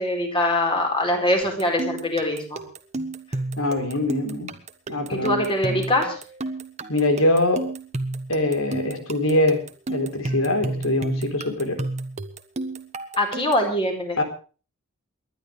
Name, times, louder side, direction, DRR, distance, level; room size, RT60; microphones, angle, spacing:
voice 1, 0.0-2.6 5.1-6.2 13.2-14.2, left 1 dB, 25° left, 3 dB, 4.6 m, -23 dB
sound 1, 1.4-13.7, right 2 dB, 30° right, 1.3 m, -32 dB
voice 2, 3.6-4.5 4.9-5.4 5.7-5.8 6.9-7.7 8.3-9.6 9.9-11.8 14.2-14.3, left 1 dB, 75° left, 7 dB, 3.9 m, -23 dB
29.0 x 11.5 x 3.4 m, 0.37 s
head